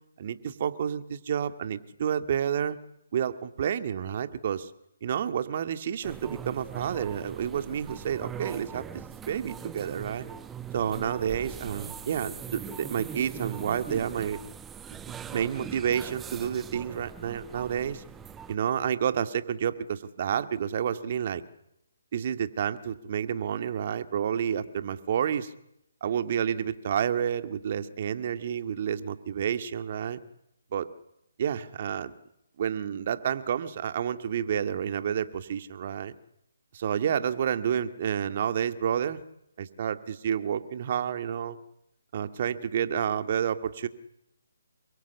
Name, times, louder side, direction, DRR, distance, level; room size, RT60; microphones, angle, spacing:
voice 1, 0.2-2.8 3.1-4.7 5.0-10.3 10.7-14.4 15.3-18.0 18.5-21.4 22.1-25.5 26.0-30.2 30.7-30.9 31.4-32.1 32.6-36.1 36.7-39.2 39.6-41.6 42.1-43.9, right 8 dB, 45° right, 10 dB, 2.1 m, -30 dB
sound 1, 6.0-18.5, right 8 dB, 10° right, 1.0 m, -41 dB
28.5 x 23.0 x 8.4 m, 0.79 s
figure-of-eight pair, 145°, 0 cm